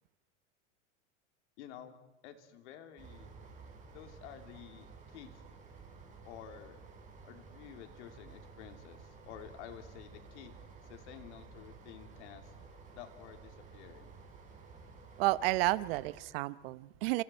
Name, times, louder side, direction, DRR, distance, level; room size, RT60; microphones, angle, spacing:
voice 1, 1.6-2.0 2.2-3.3 3.9-5.4 6.2-6.8 7.2-10.6 10.8-12.5 12.9-14.2, left 10 dB, 65° left, 6 dB, 3.1 m, -51 dB
sound 1, 3.0-16.2, right 4 dB, 20° right, 5.6 m, -53 dB
voice 2, 15.2-17.2, right 19 dB, 50° right, 17 dB, 0.9 m, -31 dB
30.0 x 27.5 x 4.5 m, 1.0 s
supercardioid pair, 150°, 37 cm